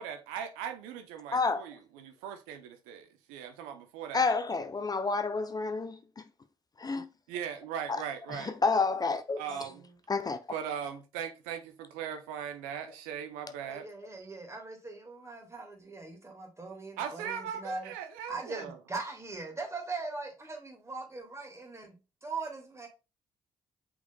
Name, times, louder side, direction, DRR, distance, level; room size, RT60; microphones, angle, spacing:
voice 1, 0.0-4.4 7.3-8.5 9.4-9.8 10.5-13.9 17.0-18.8, right 8 dB, 85° right, 0.6 m, -39 dB
voice 2, 1.3-1.6 4.1-6.0 6.8-7.1 7.9-8.0 8.3-9.6 10.1-10.4, left 4 dB, 30° left, 0.5 m, -29 dB
voice 3, 9.5-9.9 13.7-17.9 18.3-22.0 22.2-22.9, right 3 dB, 20° right, 1.9 m, -40 dB
5.9 x 3.9 x 2.2 m
hypercardioid pair, 50°, 13 cm